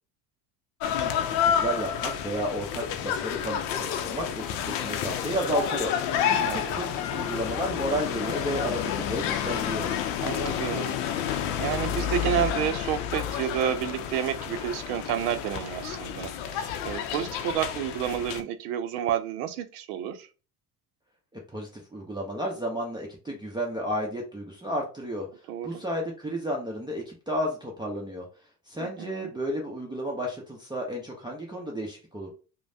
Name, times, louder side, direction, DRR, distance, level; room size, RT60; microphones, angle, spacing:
sound 1, 0.8-18.4, left 9 dB, 80° left, 0.6 m, -30 dB
voice 1, 0.8-9.9 21.3-25.3 25.6-28.3 28.7-32.3, equal, 10° right, -2 dB, 0.6 m, -32 dB
voice 2, 6.3-6.8 10.2-11.0 11.3-20.3 25.5-25.7 28.8-29.3, right 10 dB, 85° right, 10 dB, 0.5 m, -30 dB
3.1 x 2.1 x 2.6 m, 0.35 s
supercardioid pair, 80°, 46 cm